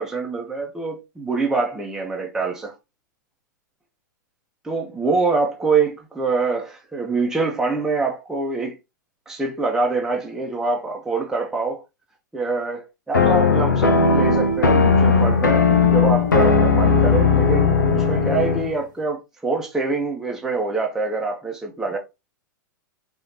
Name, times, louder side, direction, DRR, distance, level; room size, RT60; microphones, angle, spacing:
voice 1, 0.0-2.7 4.6-8.8 9.3-11.8 12.3-22.0, right 4 dB, 5° right, 1.1 m, -25 dB
sound 1, 13.1-18.7, left 4 dB, 70° left, 1.0 m, -17 dB
4.9 x 3.3 x 3.0 m
figure-of-eight pair, 100°, 10 cm